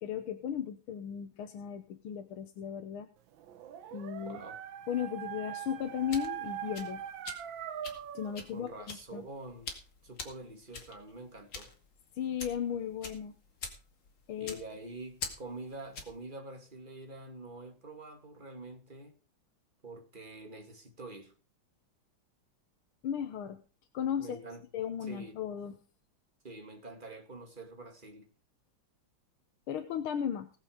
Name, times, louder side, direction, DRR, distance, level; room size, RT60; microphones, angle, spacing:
voice 1, 0.0-3.1 3.9-4.4 4.9-7.0 8.1-9.2 12.2-13.4 14.3-14.7 23.0-23.6 23.9-24.4 24.7-25.7 29.7-30.5, left 8 dB, 90° left, 1.8 m, -36 dB
Dog, 3.4-8.4, right 10 dB, 70° right, 1.6 m, -42 dB
voice 2, 4.2-4.6 8.5-9.7 10.0-11.8 14.4-19.2 19.8-21.3 24.2-24.6 25.0-25.4 26.4-28.3, right 2 dB, 25° right, 2.2 m, -46 dB
sound 1, 5.8-16.2, left 4 dB, 65° left, 3.0 m, -46 dB
18.5 x 7.5 x 5.0 m
omnidirectional pair, 2.3 m